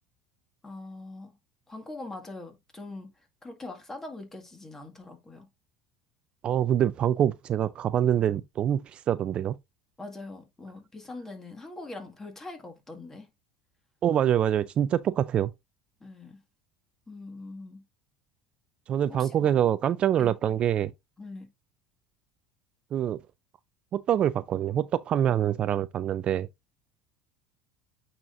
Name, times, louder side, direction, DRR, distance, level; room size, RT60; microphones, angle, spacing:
voice 1, 0.6-1.4 1.7-5.5 10.0-13.3 16.0-16.4 17.1-17.8 19.1-19.7 20.2-20.3 21.2-21.5, left 2 dB, 15° left, 1.8 m, -42 dB
voice 2, 6.4-9.5 14.0-15.5 18.9-20.9 22.9-23.2 23.9-26.5, right 10 dB, 40° right, 0.4 m, -25 dB
8.7 x 4.3 x 2.5 m
supercardioid pair, 110°, 3 cm